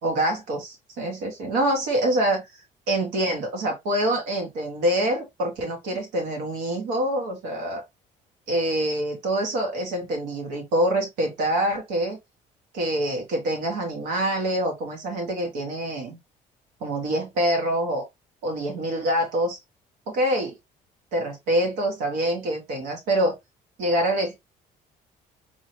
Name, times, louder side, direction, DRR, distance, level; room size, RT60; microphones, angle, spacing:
voice 1, 0.0-2.4 2.9-7.8 8.5-12.2 12.7-16.2 16.8-18.1 18.4-19.6 20.1-20.6 21.1-23.3 23.8-24.4, right 1 dB, 90° right, 1.9 m, -25 dB
4.6 x 3.1 x 2.8 m
cardioid pair, 110°, 17 cm